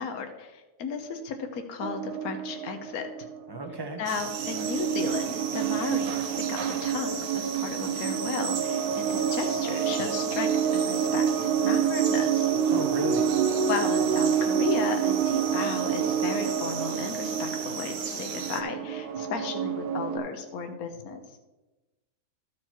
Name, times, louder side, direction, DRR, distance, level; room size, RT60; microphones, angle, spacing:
voice 1, 0.0-3.1 4.0-12.5 13.7-21.2, left 5 dB, 75° left, 5 dB, 1.4 m, -34 dB
sound 1, 1.8-3.7 4.1-20.2, right 8 dB, 90° right, 1.3 m, -28 dB
voice 2, 3.5-4.0 12.7-13.4, right 1 dB, 20° right, 4 dB, 0.8 m, -34 dB
sound 2, 4.1-18.6, right 6 dB, 65° right, 1.2 m, -37 dB
14.0 x 4.7 x 4.5 m, 1.1 s
omnidirectional pair, 1.6 m